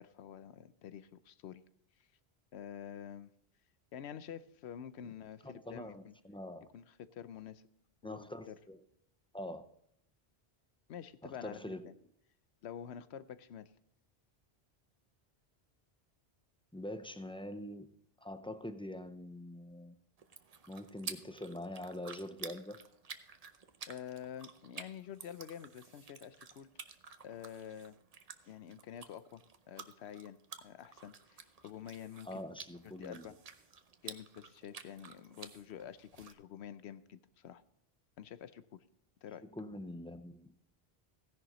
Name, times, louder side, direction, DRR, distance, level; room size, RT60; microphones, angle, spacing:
voice 1, 0.0-1.6 2.5-3.3 3.9-6.1 6.7-7.6 8.0-8.5 10.9-11.9 12.6-13.7 23.9-26.7 27.2-27.9 28.5-29.4 29.7-32.4 32.8-33.3 34.0-37.6 38.2-38.8 39.2-39.4, left 9 dB, 85° left, 14 dB, 0.9 m, -48 dB
voice 2, 5.4-6.7 8.0-8.8 9.3-9.6 11.2-11.9 16.7-17.9 18.2-19.9 20.7-22.8 32.2-33.3 39.4-40.6, left 1 dB, 10° left, 10 dB, 0.3 m, -44 dB
sound 1, 20.2-36.3, right 5 dB, 40° right, 0.7 m, -51 dB
15.5 x 10.5 x 3.0 m, 0.74 s
omnidirectional pair, 1.1 m